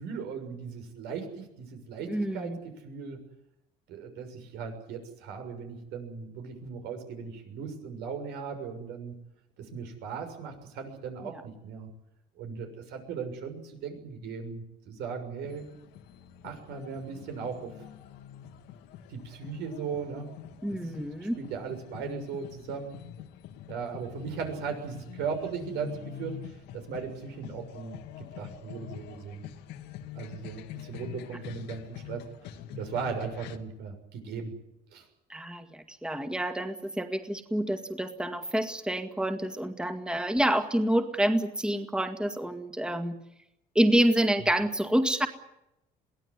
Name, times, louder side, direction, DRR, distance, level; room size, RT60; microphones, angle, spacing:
voice 1, 0.0-3.2 3.9-9.1 9.6-11.9 12.3-15.6 16.4-17.7 19.1-20.3 20.8-20.9 21.2-23.0 23.7-29.5 30.1-32.2 32.7-34.5 34.9-35.1, right 6 dB, 90° right, 6 dB, 6.6 m, -38 dB
voice 2, 2.1-2.6 20.6-21.4 35.3-43.2 43.8-45.3, right 1 dB, 5° right, 7 dB, 2.0 m, -27 dB
sound 1, 15.4-33.6, left 10 dB, 90° left, 2.0 m, -45 dB
23.0 x 17.5 x 9.7 m, 0.85 s
cardioid pair, 110°, 17 cm